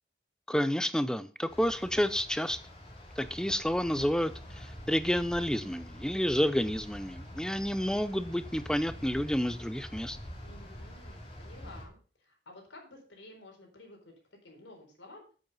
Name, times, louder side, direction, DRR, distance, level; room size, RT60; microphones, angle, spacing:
voice 1, 0.5-2.6 3.2-10.2, equal, 5° left, 13 dB, 0.5 m, -30 dB
sound 1, 1.5-11.9, equal, 30° left, 2.6 m, -46 dB
voice 2, 10.4-14.1 14.4-15.3, left 2 dB, 85° left, 1 dB, 4.2 m, -52 dB
8.9 x 8.1 x 5.4 m, 0.37 s
head